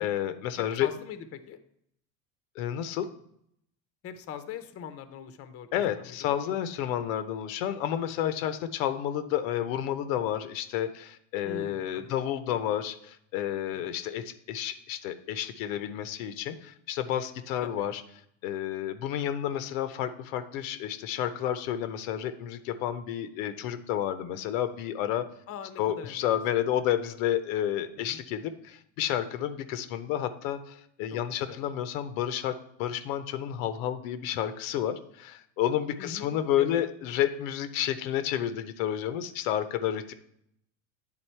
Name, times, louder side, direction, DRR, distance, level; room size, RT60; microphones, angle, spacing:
voice 1, 0.0-0.9 2.6-3.1 5.7-18.0 18.4-25.3 25.8-40.1, left 11 dB, 75° left, 11 dB, 0.7 m, -30 dB
voice 2, 0.6-1.6 4.0-5.7 6.0-6.4 11.4-12.2 13.9-14.0 17.6-17.9 25.5-26.6 28.0-28.2 31.1-31.6 36.0-36.3 36.6-36.8, left 8 dB, 35° left, 10 dB, 0.7 m, -42 dB
8.9 x 3.8 x 4.4 m, 0.73 s
supercardioid pair, 110°, 40 cm